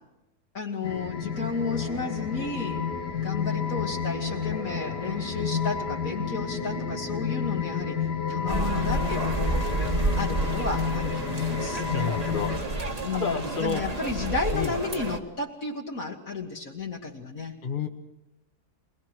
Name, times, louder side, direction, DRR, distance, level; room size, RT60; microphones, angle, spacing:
voice 1, 0.5-2.8 3.2-8.0 8.3-9.6 10.2-11.8 13.0-17.6, left 4 dB, 60° left, -1 dB, 2.0 m, -33 dB
sound 1, 0.8-12.6, left 6 dB, 90° left, 2.3 m, -30 dB
sound 2, 1.4-6.7 11.0-12.7, right 1 dB, 65° right, 1.9 m, -48 dB
sound 3, 8.5-15.2, right 2 dB, 25° right, 1.4 m, -30 dB
voice 2, 11.9-12.8 13.1-13.8 14.5-14.8 17.6-17.9, left 5 dB, 35° left, 3 dB, 1.2 m, -30 dB
22.5 x 20.5 x 6.1 m, 0.93 s
omnidirectional pair, 1.7 m